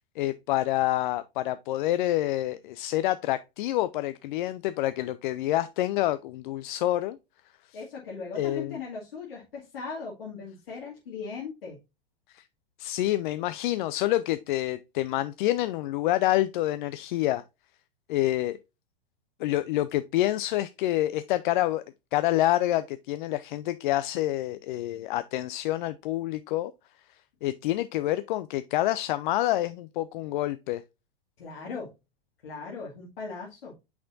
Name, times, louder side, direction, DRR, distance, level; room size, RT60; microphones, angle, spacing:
voice 1, 0.0-7.2 8.3-8.8 12.3-12.4 12.8-17.4 18.1-18.6 19.4-21.8 22.1-26.7 27.4-30.8, left 15 dB, 55° left, 0.5 m, -27 dB
voice 2, 7.7-11.8 31.4-31.9 32.4-33.8, left 4 dB, 80° left, 2.2 m, -38 dB
6.4 x 5.9 x 2.6 m
hypercardioid pair, 110°, 29 cm